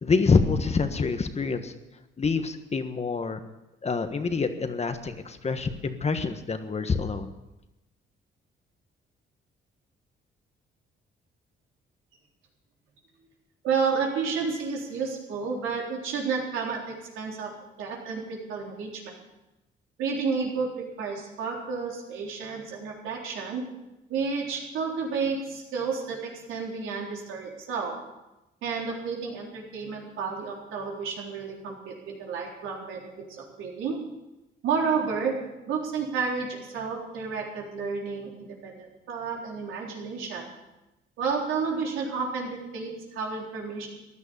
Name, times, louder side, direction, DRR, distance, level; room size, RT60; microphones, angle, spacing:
voice 1, 0.0-1.7 2.2-3.4 3.8-7.3, left 4 dB, 35° left, 8 dB, 1.4 m, -26 dB
voice 2, 13.6-17.5 17.8-19.1 20.0-23.6 24.1-28.0 28.6-34.0 34.6-35.4 35.7-40.5 41.2-43.9, right 5 dB, 90° right, -1 dB, 3.8 m, -31 dB
15.5 x 11.0 x 7.0 m, 0.97 s
cardioid pair, 90°, 20 cm